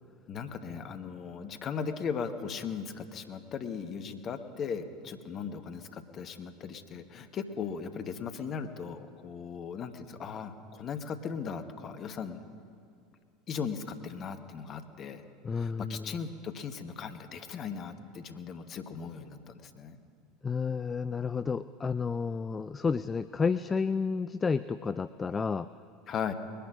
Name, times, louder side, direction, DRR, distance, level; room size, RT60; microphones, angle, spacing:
voice 1, 0.3-12.4 13.5-15.2 15.5-20.0 26.1-26.3, left 6 dB, 35° left, 9 dB, 1.2 m, -38 dB
voice 2, 15.4-16.1 20.4-25.7, left 5 dB, 20° left, 15 dB, 0.3 m, -31 dB
21.0 x 10.5 x 6.2 m, 2.3 s
figure-of-eight pair, 75°, 0 cm